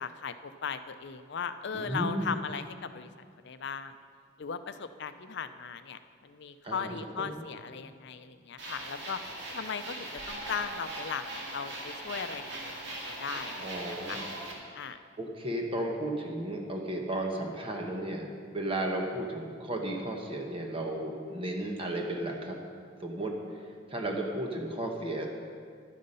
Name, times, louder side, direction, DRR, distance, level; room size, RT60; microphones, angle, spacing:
voice 1, 0.0-3.1 3.4-3.9 4.4-9.2 9.5-11.2 11.5-12.7 13.1-13.6 14.1-14.2 14.8-15.0, left 6 dB, 60° left, 11 dB, 0.5 m, -37 dB
voice 2, 1.7-2.3 6.6-7.4 13.6-14.3 14.6-14.8 15.2-22.6 23.0-23.3 23.9-25.3, right 1 dB, 30° right, 1 dB, 1.1 m, -34 dB
sound 1, 8.6-14.5, right 1 dB, 65° right, 2.2 m, -40 dB
11.5 x 9.2 x 5.5 m, 2.1 s
head